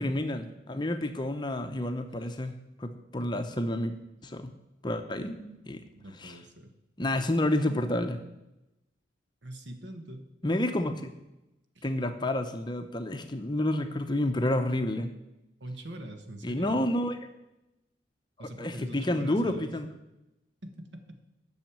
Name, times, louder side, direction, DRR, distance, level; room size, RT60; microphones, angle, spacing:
voice 1, 0.0-3.9 4.2-4.5 4.8-5.9 6.2-6.4 7.0-8.2 10.4-11.1 11.8-15.1 16.4-17.2 18.4-19.9, left 1 dB, 20° left, 7 dB, 0.7 m, -30 dB
voice 2, 6.0-6.7 9.4-10.3 11.7-11.9 15.6-16.8 18.4-19.7 20.6-21.2, right 1 dB, 65° right, 6 dB, 1.4 m, -43 dB
9.1 x 6.4 x 8.6 m, 0.94 s
head